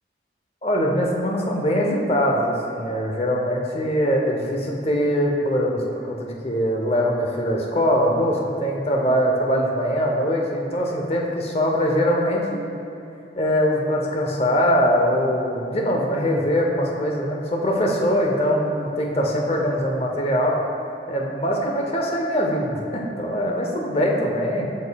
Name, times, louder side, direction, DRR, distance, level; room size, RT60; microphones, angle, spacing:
voice 1, 0.6-5.8 6.1-12.6 13.4-20.6 21.1-24.7, equal, 35° left, 0 dB, 0.6 m, -22 dB
8.0 x 5.3 x 2.3 m, 2.8 s
head